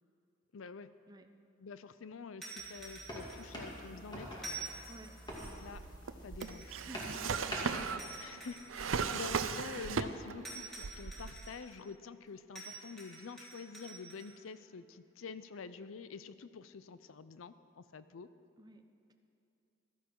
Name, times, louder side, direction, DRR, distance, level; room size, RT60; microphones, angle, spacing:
voice 1, 0.5-0.9 1.6-4.7 5.6-5.8 6.2-6.7 8.2-18.3, left 5 dB, 85° left, 13 dB, 0.5 m, -48 dB
sound 1, 2.4-3.7 4.4-5.7 6.4-7.5 8.0-9.5 10.4-11.8 12.5-14.3, right 3 dB, 5° left, 3.3 m, -48 dB
sound 2, 2.6-7.8, equal, 20° left, 2.3 m, -46 dB
voice 2, 4.9-5.7 6.8-7.5 18.6-18.8, right 2 dB, 20° right, 6 dB, 0.7 m, -53 dB
Drawer open or close, 5.3-10.5 10.8-11.6, right 5 dB, 80° right, 0.6 m, -37 dB
16.0 x 13.5 x 4.6 m, 2.6 s
head